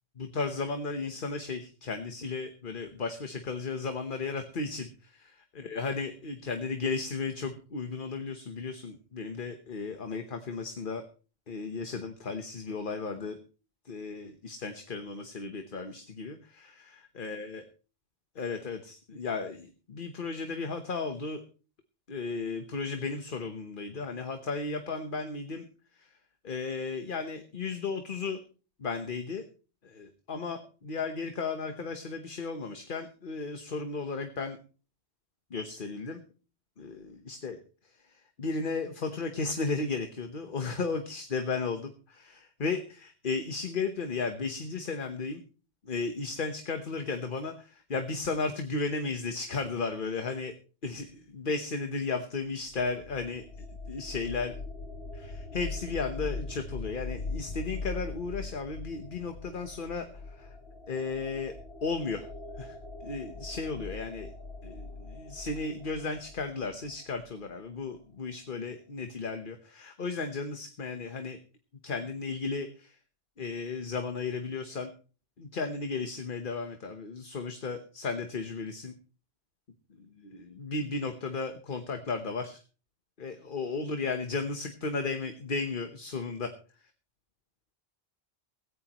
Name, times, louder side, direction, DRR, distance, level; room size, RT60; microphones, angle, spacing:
voice 1, 0.2-5.2 5.5-11.1 11.5-13.4 13.8-17.6 18.3-21.4 22.1-25.7 25.9-26.1 26.4-28.4 28.8-29.4 29.8-34.6 35.5-36.2 36.8-45.4 45.8-50.5 50.8-54.5 55.1-60.6 60.9-61.5 61.8-62.3 62.6-64.3 64.6-71.4 71.8-73.0 73.4-74.9 75.4-78.9 80.0-82.6 83.2-86.5, left 4 dB, 50° left, 7 dB, 1.3 m, -35 dB
sound 1, 52.4-67.3, left 3 dB, 70° left, 1.5 m, -41 dB
16.5 x 15.5 x 3.0 m, 0.37 s
omnidirectional pair, 1.1 m